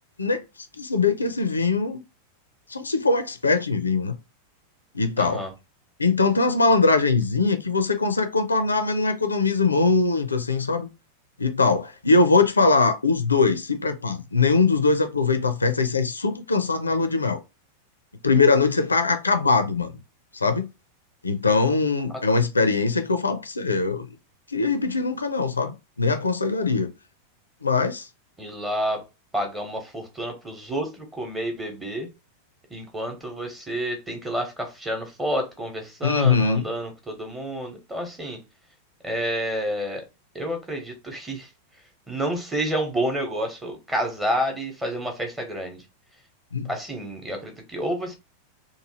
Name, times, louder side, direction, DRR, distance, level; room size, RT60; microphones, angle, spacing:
voice 1, 0.8-2.0 2.7-4.1 4.9-5.4 6.0-10.9 11.4-17.4 18.2-19.9 20.3-20.7 21.2-24.1 24.5-26.9 27.6-28.1 36.0-36.6 46.5-46.7, left 4 dB, 80° left, 0.4 m, -21 dB
voice 2, 5.2-5.5 28.4-29.0 29.3-32.1 32.7-38.4 39.0-40.0 40.3-41.5 42.1-45.8 46.7-48.2, equal, 10° right, 1.0 m, -29 dB
3.0 x 2.2 x 2.9 m
figure-of-eight pair, 90°, 0 cm